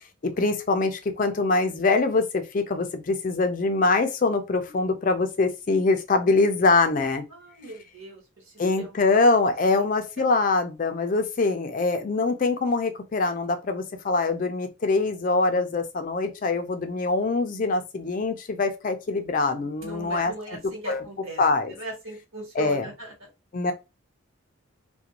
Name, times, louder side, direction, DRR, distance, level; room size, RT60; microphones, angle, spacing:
voice 1, 0.4-7.2 8.6-20.3 20.9-21.0 21.4-21.7 22.6-22.8 23.5-23.7, left 3 dB, 40° left, 0.4 m, -23 dB
voice 2, 7.3-9.1 9.6-9.9 19.8-23.3, right 1 dB, 80° right, 1.5 m, -39 dB
2.4 x 2.1 x 2.8 m
head